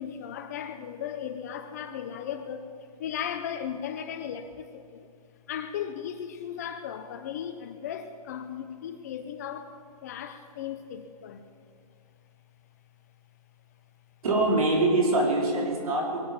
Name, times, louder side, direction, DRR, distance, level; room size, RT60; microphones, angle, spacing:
voice 1, 0.0-5.1 5.5-11.4, left 8 dB, 25° left, 8 dB, 0.6 m, -36 dB
voice 2, 14.2-16.3, right 2 dB, 60° right, -1 dB, 4.6 m, -24 dB
22.5 x 8.4 x 7.3 m, 2.3 s
hypercardioid pair, 160°, 21 cm